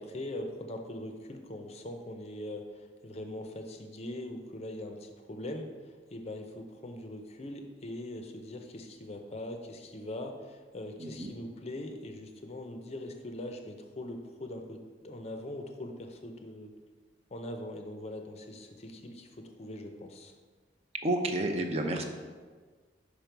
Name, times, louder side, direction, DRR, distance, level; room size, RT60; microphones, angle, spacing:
voice 1, 0.0-5.7 6.1-14.8 15.0-16.7 17.3-20.3, left 1 dB, 35° left, 4 dB, 0.5 m, -41 dB
voice 2, 11.0-11.3 21.0-22.0, right 1 dB, 35° right, 4 dB, 0.5 m, -30 dB
5.1 x 5.1 x 4.5 m, 1.5 s
head